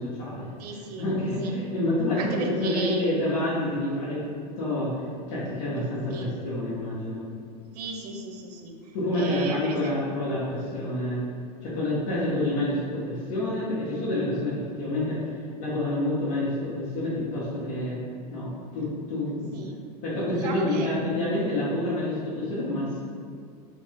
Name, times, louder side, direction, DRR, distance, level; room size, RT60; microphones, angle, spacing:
voice 1, 0.0-0.5 1.0-5.0 5.3-7.2 8.9-11.2 11.6-18.0 18.3-19.6 20.0-23.0, left 1 dB, 60° left, -9 dB, 1.1 m, -28 dB
voice 2, 0.6-1.0 1.4-1.5 2.2-3.1 6.1-6.3 7.7-8.8 9.1-10.0 19.5-19.7 20.2-20.9, right 4 dB, 80° right, 3 dB, 0.6 m, -35 dB
3.7 x 2.5 x 3.6 m, 2.2 s
supercardioid pair, 120°, 20 cm